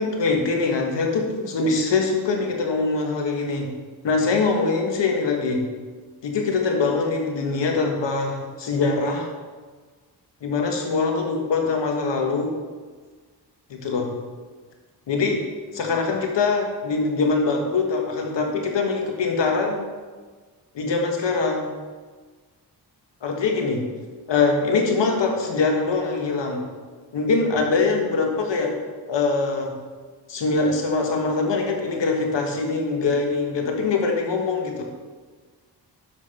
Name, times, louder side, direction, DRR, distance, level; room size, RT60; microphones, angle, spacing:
voice 1, 0.0-3.7 4.0-5.6 6.2-9.3 10.4-12.5 13.7-14.1 15.1-15.4 15.7-19.9 20.7-21.7 23.2-23.8 24.3-26.6 27.1-28.7 29.1-29.7 30.3-34.8, left 4 dB, 80° left, 2 dB, 1.4 m, -23 dB
7.2 x 5.3 x 5.4 m, 1.4 s
cardioid pair, 70°, 42 cm